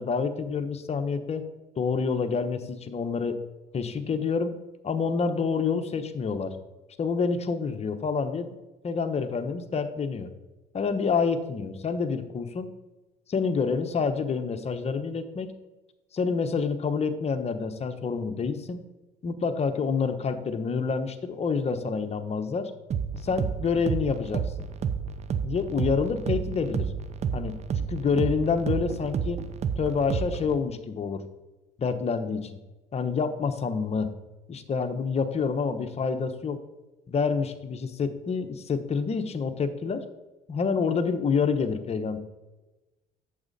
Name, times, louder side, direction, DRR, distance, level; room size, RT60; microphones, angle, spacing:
voice 1, 0.0-1.5 1.8-3.4 3.7-4.6 4.8-6.6 7.0-8.6 8.8-10.3 10.7-12.7 13.3-15.5 16.1-18.8 19.2-22.7 23.2-24.5 25.4-26.9 27.3-29.5 29.8-31.2 31.8-32.6 32.9-34.1 34.5-36.6 37.1-40.0 40.5-42.2, left 5 dB, 40° left, 8 dB, 1.0 m, -28 dB
sound 1, 22.9-30.6, right 7 dB, 45° right, 0.8 m, -30 dB
8.7 x 7.4 x 4.2 m, 1.1 s
supercardioid pair, 80°, 16 cm